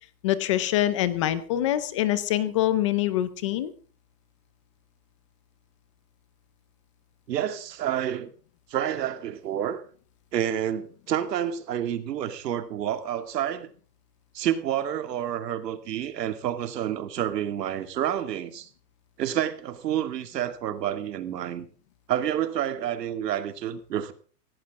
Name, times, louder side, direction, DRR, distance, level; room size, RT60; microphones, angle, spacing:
voice 1, 0.2-3.7, left 13 dB, 20° left, 0.6 m, -25 dB
voice 2, 7.3-8.3 8.7-9.8 10.3-13.7 14.3-18.7 19.2-21.7 22.1-24.1, right 10 dB, 80° right, 2.5 m, -29 dB
17.5 x 17.0 x 3.7 m
supercardioid pair, 175°, 49 cm